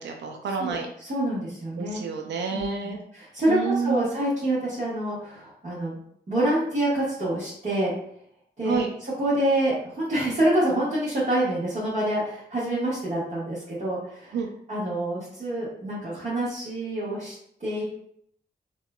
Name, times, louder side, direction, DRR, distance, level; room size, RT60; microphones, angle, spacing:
voice 1, 0.0-0.9 1.8-3.0 3.5-4.1 8.6-8.9 14.3-14.5, right 5 dB, 90° right, 3 dB, 0.4 m, -29 dB
voice 2, 1.0-2.0 2.5-6.0 6.3-7.9 8.6-8.8 9.2-14.3 14.7-17.3 17.6-17.9, right 1 dB, 40° right, -11 dB, 1.3 m, -26 dB
3.5 x 2.3 x 2.2 m, 0.68 s
cardioid pair, 65°, 18 cm